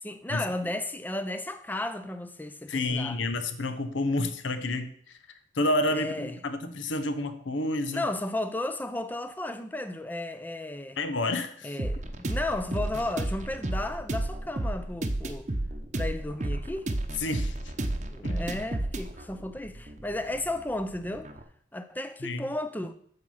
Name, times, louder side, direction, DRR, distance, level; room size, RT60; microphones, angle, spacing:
voice 1, 0.0-3.2 5.9-6.4 7.9-11.0 11.6-15.5 15.9-16.9 18.0-21.3 21.7-22.9, left 1 dB, 10° left, 0.6 m, -34 dB
voice 2, 2.7-5.2 5.5-8.0 11.0-11.7 17.2-17.6 18.2-18.4 22.2-22.5, left 2 dB, 70° left, 1.0 m, -29 dB
sound 1, 11.8-21.4, right 1 dB, 35° right, 0.9 m, -32 dB
8.0 x 7.5 x 5.6 m
head